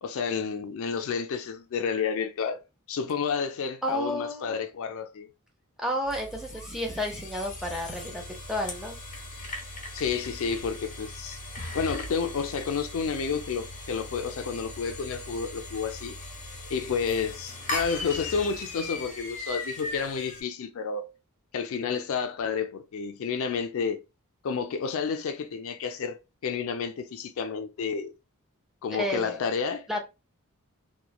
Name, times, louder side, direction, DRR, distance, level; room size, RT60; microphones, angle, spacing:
voice 1, 0.0-2.6 2.9-5.3 9.9-11.4 11.7-16.2 16.7-21.1 21.5-24.0 24.4-28.1 28.8-29.9, left 6 dB, 65° left, 0.4 m, -30 dB
voice 2, 3.8-4.6 5.8-8.2 8.5-9.0 28.9-29.4 29.9-30.0, left 1 dB, ahead, 0.6 m, -31 dB
sound 1, 6.0-20.4, left 2 dB, 35° left, 0.9 m, -39 dB
sound 2, 17.1-19.8, right 2 dB, 80° right, 0.8 m, -48 dB
3.0 x 2.2 x 2.3 m
head